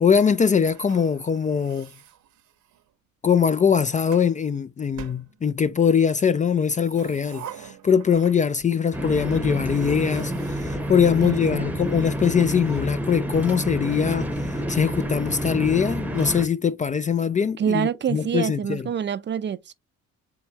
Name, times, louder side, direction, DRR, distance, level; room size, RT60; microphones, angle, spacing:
voice 1, 0.0-1.9 3.2-10.3 10.6-14.3 14.7-18.8, left 7 dB, 25° left, 0.3 m, -22 dB
sound 1, 0.6-2.9 3.6-4.3 4.9-5.9 6.6-8.7 9.0-9.1 9.5-11.6, right 10 dB, 70° right, 0.8 m, -46 dB
sound 2, 8.9-16.4, equal, 5° right, 0.8 m, -28 dB
voice 2, 11.2-11.7 17.6-19.7, right 8 dB, 40° right, 0.4 m, -26 dB
4.7 x 3.5 x 2.8 m
cardioid pair, 90°, 30 cm